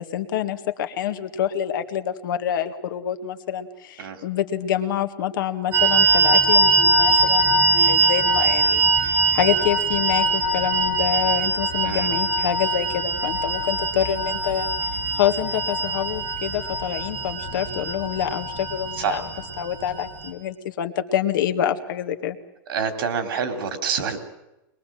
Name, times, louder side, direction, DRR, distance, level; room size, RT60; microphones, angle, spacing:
voice 1, 0.0-14.7 15.1-19.3 19.6-22.4, left 10 dB, 65° left, 7 dB, 1.9 m, -26 dB
sound 1, 5.7-20.3, right 2 dB, 20° right, 3.9 m, -22 dB
voice 2, 22.7-24.2, right 7 dB, 75° right, 8 dB, 3.5 m, -27 dB
22.5 x 22.0 x 7.7 m, 0.92 s
supercardioid pair, 180°, 12 cm